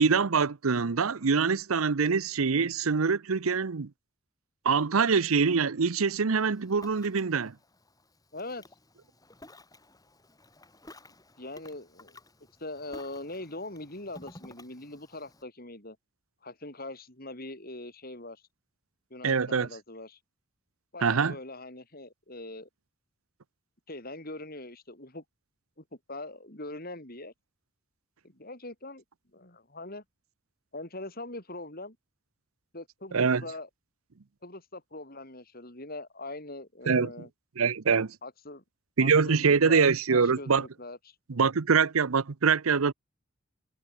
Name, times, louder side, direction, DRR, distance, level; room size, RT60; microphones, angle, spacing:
voice 1, 0.0-3.9 4.6-7.5 19.2-19.7 21.0-21.4 33.1-33.4 36.9-37.1 37.6-38.2 39.0-40.7 41.3-42.9, right 5 dB, 90° right, 0.8 m, -24 dB
Ocean, 6.4-15.4, left 1 dB, 15° left, 7.6 m, -54 dB
voice 2, 8.3-8.7 11.4-12.2 12.6-16.0 16.4-18.4 19.1-20.2 20.9-22.7 23.9-25.2 26.1-27.3 28.2-29.0 29.3-30.0 30.7-32.0 32.7-33.7 34.4-37.3 38.2-38.6 39.0-41.2, left 2 dB, 45° left, 5.5 m, -42 dB
head